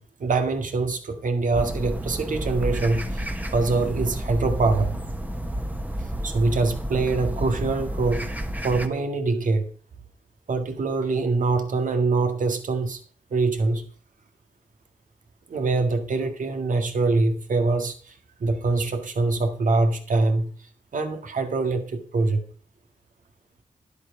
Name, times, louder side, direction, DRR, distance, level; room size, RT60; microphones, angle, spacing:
voice 1, 0.2-3.3 3.5-4.9 6.2-8.3 8.6-9.7 10.5-13.0 13.3-13.9 15.5-22.5, right 3 dB, 70° right, 1.9 m, -24 dB
sound 1, 1.5-8.9, right 1 dB, 10° right, 1.4 m, -30 dB
11.0 x 8.1 x 4.9 m
cardioid pair, 45°, 14 cm